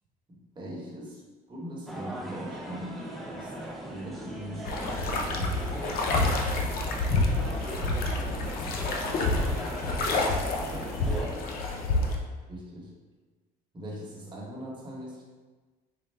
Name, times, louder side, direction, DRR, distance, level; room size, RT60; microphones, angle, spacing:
voice 1, 0.3-1.2 1.5-3.5 3.9-5.5 12.5-12.9 13.7-15.2, equal, 25° right, -4 dB, 1.1 m, -40 dB
sound 1, 1.9-11.3, right 1 dB, ahead, 0.5 m, -39 dB
sound 2, 4.6-12.2, left 2 dB, 65° left, 0.5 m, -28 dB
voice 2, 10.3-11.4, right 4 dB, 65° right, -2 dB, 0.5 m, -51 dB
4.2 x 2.1 x 3.2 m, 1.3 s
cardioid pair, 110°, 17 cm